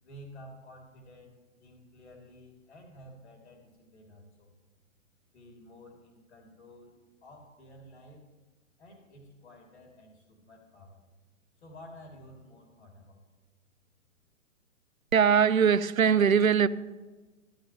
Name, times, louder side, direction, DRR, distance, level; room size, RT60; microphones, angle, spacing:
voice 1, 0.0-1.3 1.6-4.5 5.3-7.0 7.2-8.2 8.8-11.0 11.6-13.2, equal, 55° left, 2.8 m, -52 dB
voice 2, 15.1-16.7, right 7 dB, 80° right, 0.6 m, -21 dB
15.0 x 13.0 x 3.0 m
figure-of-eight pair, 120°, 41 cm